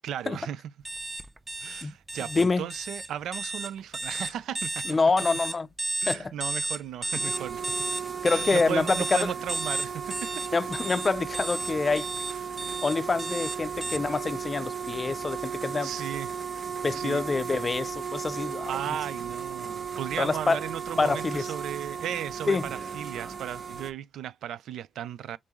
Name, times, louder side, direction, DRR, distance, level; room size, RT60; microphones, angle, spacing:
voice 1, 0.0-0.6 1.6-5.0 6.0-7.6 8.2-10.4 12.3-12.6 15.8-16.3 16.9-17.2 18.7-25.4, right 10 dB, 80° right, 0.4 m, -36 dB
sound 1, 0.8-14.0, right 2 dB, 15° right, 0.7 m, -33 dB
voice 2, 2.3-2.7 4.9-5.7 6.1-6.3 8.2-9.3 10.5-12.1 12.8-15.9 16.8-18.7 20.2-20.6 21.0-21.5 22.5-22.7, left 4 dB, 35° left, 0.4 m, -26 dB
sound 2, 7.1-23.9, right 6 dB, 45° right, 0.9 m, -35 dB
6.7 x 2.6 x 3.0 m
supercardioid pair, 65°, 0 cm